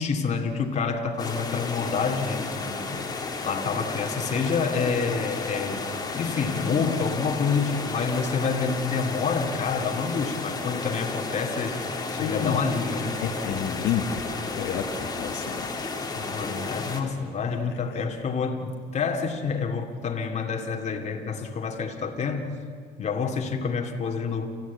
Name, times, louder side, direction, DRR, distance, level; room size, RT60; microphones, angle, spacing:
voice 1, 0.0-3.0 3.4-5.8 6.1-13.2 16.2-22.5 23.0-24.5, left 5 dB, 40° left, 3 dB, 2.4 m, -28 dB
sound 1, 1.2-17.0, left 3 dB, 25° left, 2.7 m, -33 dB
voice 2, 12.2-12.6 13.2-14.2 14.5-15.7 17.0-17.1 17.5-17.6 17.9-18.0, left 8 dB, 80° left, 3 dB, 1.7 m, -30 dB
28.0 x 14.5 x 8.4 m, 2.1 s
cardioid pair, 110°, 17 cm